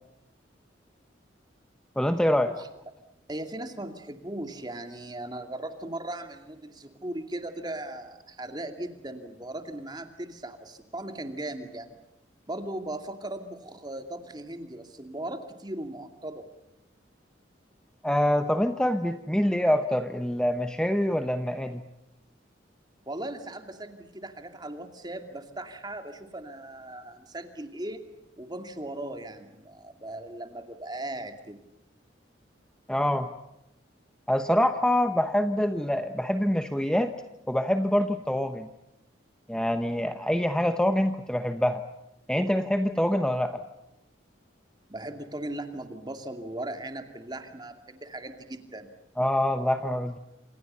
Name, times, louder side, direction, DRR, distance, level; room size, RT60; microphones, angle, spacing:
voice 1, 2.0-2.5 18.0-21.8 32.9-33.3 34.3-37.1 37.5-38.7 39.5-41.8 42.3-43.6 49.2-50.2, left 1 dB, 5° left, 8 dB, 0.9 m, -25 dB
voice 2, 3.3-12.0 12.5-16.5 23.1-28.0 28.4-31.6 44.9-49.0, right 1 dB, 20° right, 6 dB, 2.5 m, -38 dB
28.0 x 27.5 x 5.6 m, 0.90 s
head